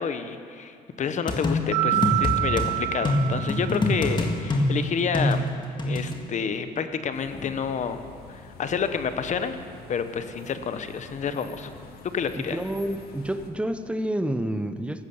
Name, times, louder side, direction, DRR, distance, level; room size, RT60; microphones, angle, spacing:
voice 1, 0.0-5.4 5.8-8.0 8.3-9.6 9.9-11.7 12.1-12.6, left 6 dB, 45° left, 10 dB, 1.0 m, -29 dB
sound 1, 1.3-2.7 3.1-6.2, left 1 dB, 25° left, 1.9 m, -25 dB
Mallet percussion, 1.7-4.1, right 18 dB, 85° right, 2.7 m, -27 dB
sound 2, 7.1-13.5, left 4 dB, 65° left, 1.9 m, -45 dB
voice 2, 12.3-15.0, right 1 dB, 5° right, 10 dB, 0.8 m, -29 dB
15.0 x 12.0 x 7.2 m, 2.4 s
cardioid pair, 110°, 17 cm